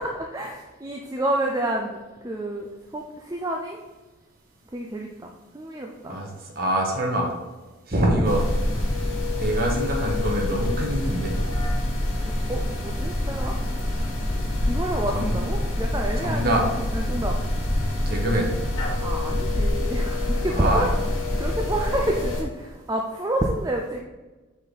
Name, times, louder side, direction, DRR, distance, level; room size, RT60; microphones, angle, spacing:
voice 1, 0.0-3.8 4.7-6.2 12.2-13.5 14.7-17.4 19.0-20.9 21.4-24.0, right 1 dB, 15° right, 1 dB, 0.5 m, -29 dB
voice 2, 6.5-7.3 7.9-8.4 9.4-11.3 15.1-15.4 16.2-16.7 18.1-18.5 20.5-20.9, right 1 dB, 45° right, -1 dB, 1.4 m, -24 dB
sound 1, 8.2-22.4, left 1 dB, 90° left, 2.0 m, -26 dB
8.3 x 4.2 x 4.1 m, 1.2 s
head